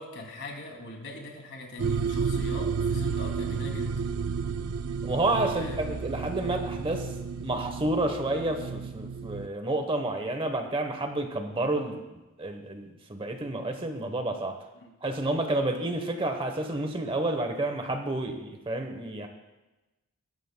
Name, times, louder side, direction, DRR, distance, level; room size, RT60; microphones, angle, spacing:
voice 1, 0.0-3.9 5.5-5.8 14.8-14.9, left 2 dB, 55° left, 1 dB, 2.6 m, -41 dB
sound 1, 1.8-9.5, right 5 dB, 80° right, 0.5 m, -31 dB
voice 2, 5.0-7.1 7.4-14.6 15.0-19.3, right 2 dB, 25° right, 5 dB, 1.0 m, -30 dB
21.0 x 12.5 x 2.2 m, 1.1 s
head